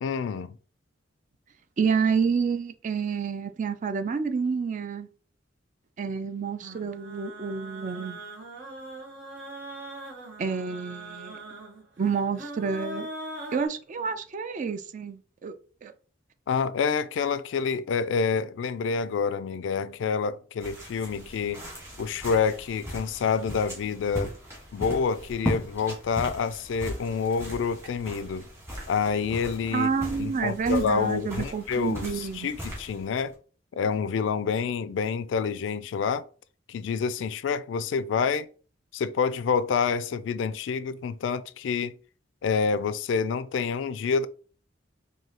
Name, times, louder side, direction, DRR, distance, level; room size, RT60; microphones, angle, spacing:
voice 1, 0.0-0.6 16.5-21.6 22.0-24.3 24.7-28.5 28.9-29.9 30.2-33.3 33.7-36.2 36.7-38.5 38.9-41.9 42.4-44.3, left 5 dB, 75° left, 0.3 m, -27 dB
voice 2, 1.8-5.1 6.0-8.2 10.4-11.4 12.0-13.1 13.5-15.5 15.8-15.9 29.7-32.5, right 5 dB, 40° right, 0.4 m, -29 dB
sound 1, 6.6-13.7, right 2 dB, 75° right, 1.1 m, -41 dB
sound 2, 20.6-33.3, equal, 15° right, 1.5 m, -38 dB
4.7 x 2.7 x 2.9 m
head